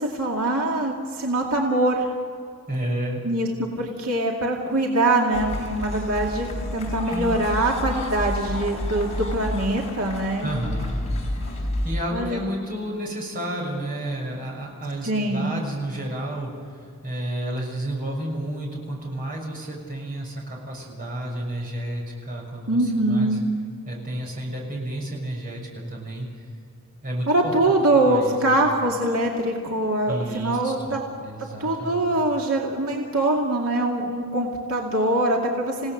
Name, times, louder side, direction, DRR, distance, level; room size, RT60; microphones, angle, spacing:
voice 1, 0.0-2.1 3.2-10.5 12.1-12.4 15.1-15.5 22.7-23.4 27.3-31.0 31.6-35.9, right 1 dB, 85° right, -1 dB, 2.4 m, -23 dB
voice 2, 2.7-3.2 7.1-7.4 10.4-11.0 11.8-23.5 23.8-26.3 27.0-27.5 28.1-28.5 30.1-32.1, right 1 dB, 40° right, -1 dB, 6.6 m, -31 dB
sound 1, 5.3-11.9, left 1 dB, 30° left, 5.2 m, -30 dB
28.5 x 17.5 x 6.6 m, 2.3 s
head